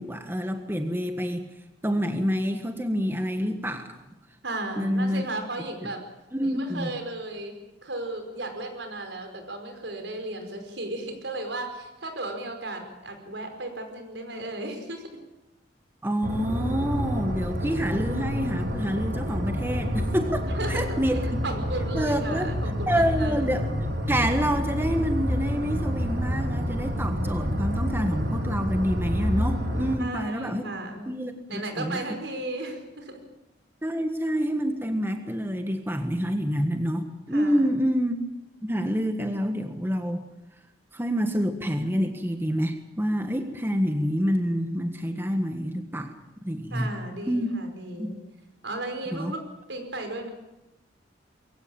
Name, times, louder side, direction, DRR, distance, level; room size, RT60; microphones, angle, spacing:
voice 1, 0.0-1.4 1.8-4.0 4.8-5.2 5.8-5.9 6.3-6.9 16.0-20.4 20.7-21.2 21.9-22.5 22.9-23.7 24.1-30.7 31.1-32.0 33.8-38.2 38.6-40.2 40.9-46.1 46.4-46.9 47.3-47.5 48.0-48.1 49.1-49.3, equal, 10° right, 6 dB, 1.5 m, -27 dB
voice 2, 4.4-6.0 6.5-7.6 7.8-15.1 20.5-23.3 30.0-31.1 31.5-33.2 37.3-37.6 46.7-48.2 48.6-49.4 49.7-50.3, right 2 dB, 80° right, 5 dB, 5.2 m, -35 dB
sound 1, 16.2-29.9, equal, 65° right, 4.2 m, -28 dB
22.5 x 16.5 x 8.8 m, 0.97 s
head